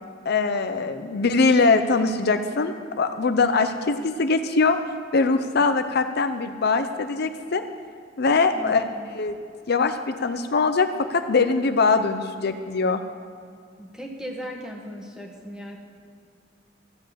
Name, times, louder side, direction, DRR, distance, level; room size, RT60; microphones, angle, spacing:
voice 1, 0.3-4.8 5.1-7.6 8.2-8.8 9.1-9.4 9.7-13.0, left 4 dB, 60° left, 8 dB, 0.6 m, -22 dB
voice 2, 8.5-9.1 13.8-15.8, equal, 5° right, 0 dB, 1.6 m, -37 dB
14.5 x 7.7 x 7.4 m, 2.3 s
head